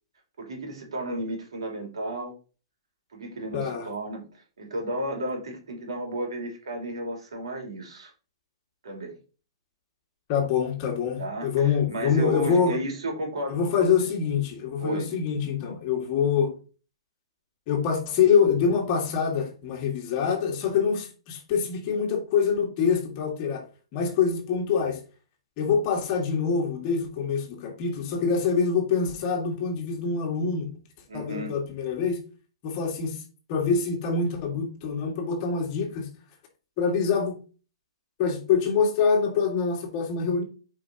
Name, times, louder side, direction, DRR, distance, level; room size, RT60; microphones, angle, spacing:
voice 1, 0.4-2.3 3.1-8.1 8.8-9.2 11.2-14.1 14.8-15.1 31.1-31.6, right 1 dB, 85° right, 3.3 m, -33 dB
voice 2, 3.5-3.9 10.3-12.7 13.5-16.5 17.7-23.6 23.9-25.0 25.6-30.7 31.1-32.2 32.6-33.2 33.5-36.1 36.8-37.4 38.2-40.4, left 6 dB, 35° left, 1.9 m, -25 dB
8.4 x 5.0 x 2.9 m
hypercardioid pair, 150°, 3 cm